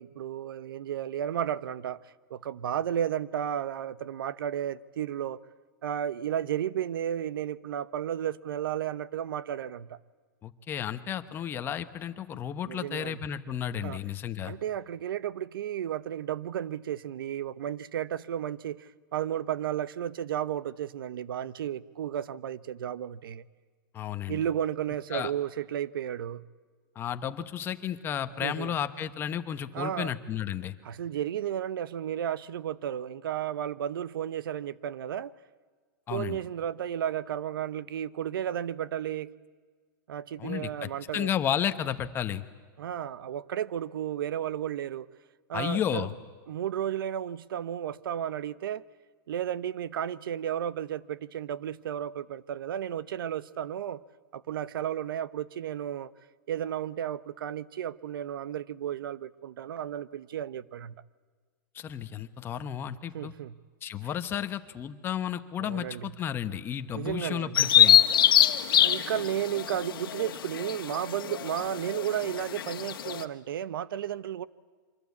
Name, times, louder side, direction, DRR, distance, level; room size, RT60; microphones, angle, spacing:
voice 1, 0.0-2.0 2.3-5.4 5.8-10.0 12.6-13.2 13.8-14.0 14.4-23.4 24.3-26.4 28.4-28.7 29.7-30.1 30.8-35.3 36.1-39.3 40.1-41.3 42.8-45.1 45.5-46.1 46.5-48.8 49.3-54.0 54.3-56.1 56.5-61.0 63.1-63.6 65.6-66.1 66.9-67.7 68.8-74.5, right 10 dB, 85° right, 0.9 m, -33 dB
voice 2, 10.4-14.5 23.9-24.4 25.1-25.3 26.9-30.7 36.1-36.4 40.4-42.4 45.5-46.1 61.7-63.3 63.8-68.0, left 9 dB, 20° left, 1.0 m, -33 dB
Bird vocalization bird call bird song, 67.5-73.2, left 10 dB, 90° left, 1.6 m, -24 dB
26.5 x 24.5 x 8.4 m
supercardioid pair, 160°, 11 cm